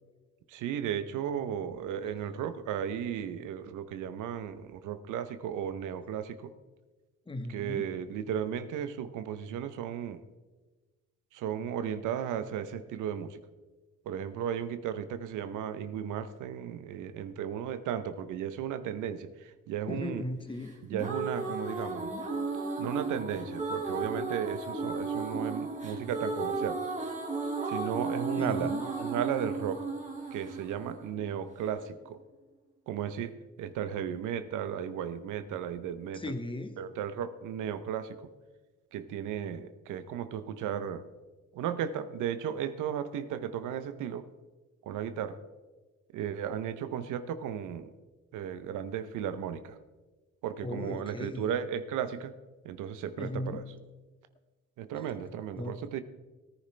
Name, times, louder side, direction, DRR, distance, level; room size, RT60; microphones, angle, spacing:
voice 1, 0.5-6.5 7.5-10.2 11.3-13.4 14.1-20.2 20.8-22.1 22.8-26.8 27.7-29.9 30.3-32.2 32.9-36.2 36.8-38.3 38.9-41.0 41.5-44.3 44.8-45.4 46.1-47.9 48.3-49.8 50.4-52.3 52.6-53.6 54.8-56.0, right 9 dB, 85° right, 11 dB, 0.8 m, -35 dB
voice 2, 7.3-7.9 19.9-20.8 28.4-28.8 36.1-36.8 50.6-51.5 53.2-53.6 55.6-55.8, left 2 dB, 15° left, 8 dB, 1.2 m, -37 dB
sound 1, 20.7-31.7, right 3 dB, 25° right, 2.2 m, -34 dB
18.0 x 10.0 x 3.3 m, 1.2 s
cardioid pair, 90°, 30 cm